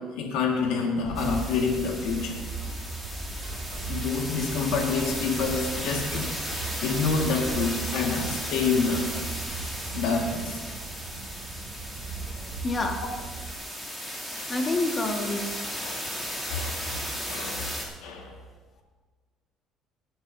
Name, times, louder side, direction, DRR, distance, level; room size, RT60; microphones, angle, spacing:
voice 1, 0.0-2.4 3.9-6.3 6.8-9.1 9.9-10.8 14.3-14.4 15.8-16.1 16.5-16.9 17.3-17.7 18.0-18.3, left 4 dB, 85° left, 0 dB, 1.8 m, -27 dB
sound 1, 1.0-13.5, right 4 dB, 35° right, 3.0 m, -38 dB
sound 2, 1.1-17.8, equal, 10° left, 2.7 m, -35 dB
voice 2, 12.6-13.0 14.5-15.4, left 2 dB, 25° left, 3 dB, 1.6 m, -27 dB
19.0 x 12.5 x 2.7 m, 1.4 s
cardioid pair, 125°, 0 cm